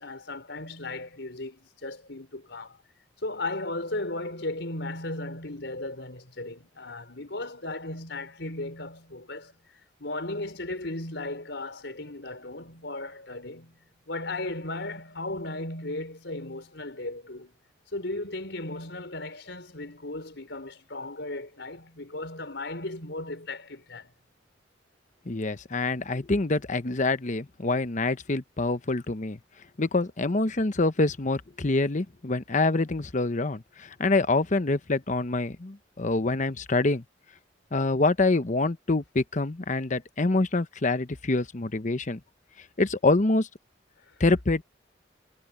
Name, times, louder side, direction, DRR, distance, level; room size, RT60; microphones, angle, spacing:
voice 1, 0.0-2.8 3.2-9.5 10.0-13.8 14.1-17.5 17.9-24.1, left 2 dB, 70° left, 5.2 m, -36 dB
voice 2, 25.3-29.4 29.8-37.0 37.7-42.2 42.8-43.5 44.2-44.6, left 2 dB, 45° left, 1.0 m, -26 dB
head